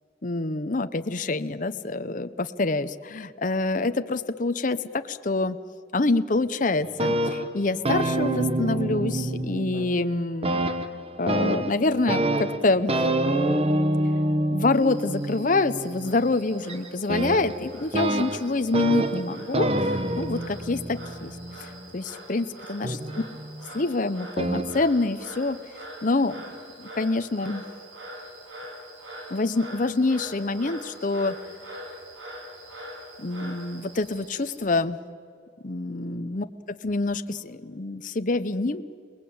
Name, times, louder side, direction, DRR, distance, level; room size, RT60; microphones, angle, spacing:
voice 1, 0.2-5.6 5.9-10.6 11.2-13.0 14.5-19.9 20.2-21.4 21.9-23.2 23.7-25.6 26.0-27.6 29.3-31.4 33.2-35.0 35.6-38.8, left 3 dB, 45° left, 10 dB, 0.7 m, -26 dB
sound 1, 6.8-10.1 10.4-22.0 22.8-23.7 24.4-24.8, right 1 dB, 30° right, 1.1 m, -27 dB
Frog, 14.7-34.6, equal, 85° right, 7.0 m, -44 dB
28.5 x 19.5 x 8.6 m, 2.2 s
head